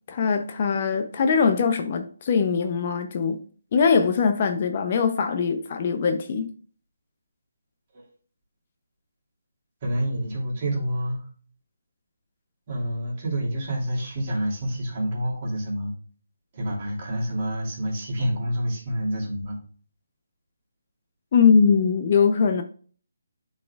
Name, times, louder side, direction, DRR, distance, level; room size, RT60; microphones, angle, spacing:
voice 1, 0.1-3.4 3.7-6.5 21.3-22.6, left 5 dB, 40° left, 0.5 m, -21 dB
voice 2, 9.8-11.3 12.7-15.9 16.5-19.6, equal, 35° right, 2.7 m, -28 dB
9.9 x 4.2 x 2.3 m
hypercardioid pair, 160°, 0 cm